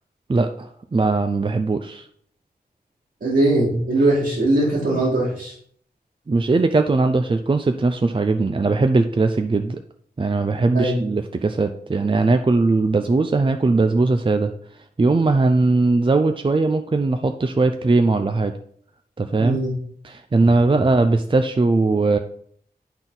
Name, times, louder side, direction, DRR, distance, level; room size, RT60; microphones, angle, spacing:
voice 1, 0.3-2.1 6.3-9.8 10.2-14.5 15.0-18.5 19.2-19.6 20.0-22.2, right 3 dB, 30° right, 7 dB, 0.5 m, -19 dB
voice 2, 3.2-5.5 10.7-11.0 19.4-19.8, right 2 dB, 75° right, -6 dB, 2.2 m, -20 dB
10.5 x 4.1 x 3.9 m, 0.63 s
wide cardioid pair, 75°, 17 cm